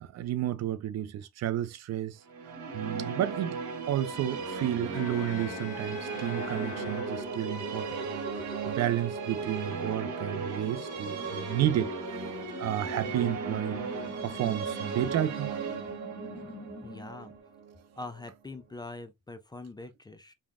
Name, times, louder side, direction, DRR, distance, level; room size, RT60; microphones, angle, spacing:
voice 1, 0.0-2.2 2.7-3.6 3.9-8.0 8.7-11.9 12.6-13.8 14.2-15.5, right 12 dB, 60° right, 0.4 m, -31 dB
sound 1, 2.3-18.3, right 5 dB, 80° right, 0.9 m, -36 dB
sound 2, 2.5-17.4, left 2 dB, 35° left, 1.1 m, -45 dB
Bowed string instrument, 4.9-7.6, left 12 dB, 85° left, 0.5 m, -44 dB
voice 2, 16.8-17.3 18.0-20.3, left 2 dB, 15° left, 0.4 m, -43 dB
3.3 x 2.1 x 2.4 m
cardioid pair, 90°, 30 cm